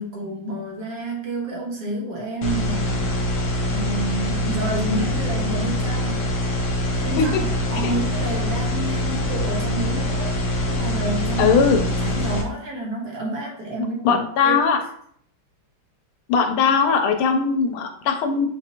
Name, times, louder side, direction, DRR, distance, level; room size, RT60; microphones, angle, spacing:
voice 1, 0.0-3.2 3.7-6.3 7.0-11.6 12.0-14.2 14.4-14.7, right 1 dB, 55° right, -3 dB, 1.4 m, -29 dB
vhs hum, 2.4-12.4, left 1 dB, 65° left, 1.5 m, -24 dB
voice 2, 11.4-11.8 14.0-14.8 16.3-18.5, left 6 dB, 85° left, 5 dB, 1.4 m, -19 dB
5.8 x 2.5 x 2.8 m, 0.64 s
omnidirectional pair, 2.3 m